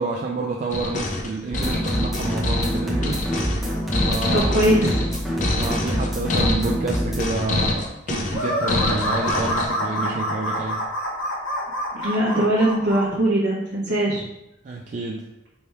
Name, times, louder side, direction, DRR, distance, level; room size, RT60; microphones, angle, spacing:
voice 1, 0.0-3.2 4.1-4.5 5.6-10.8 14.6-15.2, right 3 dB, 40° right, -1 dB, 0.3 m, -28 dB
sound 1, 0.7-9.7, left 2 dB, 40° left, 0.4 m, -26 dB
sound 2, 1.5-7.2, equal, ahead, 0.8 m, -26 dB
voice 2, 4.3-5.1 11.9-14.2, right 1 dB, 65° right, -7 dB, 0.8 m, -21 dB
sound 3, 8.3-13.1, equal, 90° left, 0.9 m, -26 dB
3.4 x 2.3 x 4.2 m, 0.89 s
head